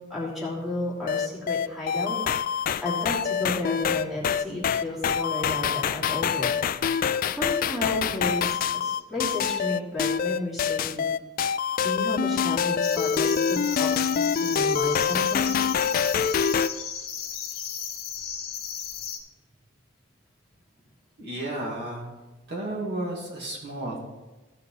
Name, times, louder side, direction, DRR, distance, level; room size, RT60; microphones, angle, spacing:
voice 1, 0.1-6.5 7.3-11.0 11.8-15.7, left 1 dB, ahead, -6 dB, 2.9 m, -33 dB
sound 1, 1.1-16.7, left 7 dB, 45° left, 0.3 m, -25 dB
sound 2, 12.8-19.2, left 8 dB, 85° left, 1.2 m, -35 dB
voice 2, 21.2-22.1 22.5-24.1, right 1 dB, 55° right, -4 dB, 2.5 m, -33 dB
15.0 x 5.2 x 4.4 m, 1.2 s
head